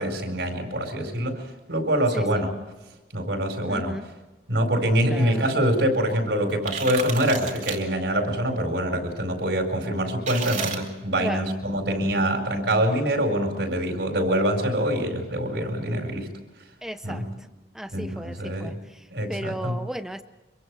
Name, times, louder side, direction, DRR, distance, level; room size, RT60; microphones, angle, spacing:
voice 1, 0.0-1.4 1.7-2.5 3.1-4.0 4.5-16.3 17.0-17.3 17.9-18.7 19.1-19.8, right 1 dB, 80° right, 3 dB, 4.7 m, -25 dB
voice 2, 3.7-4.1 5.1-5.4 11.2-11.4 16.8-17.2 17.7-20.2, equal, 5° right, 10 dB, 0.6 m, -35 dB
sound 1, 6.5-7.8 10.3-10.8, right 6 dB, 45° right, 2.7 m, -31 dB
25.5 x 24.0 x 4.8 m, 1.1 s
head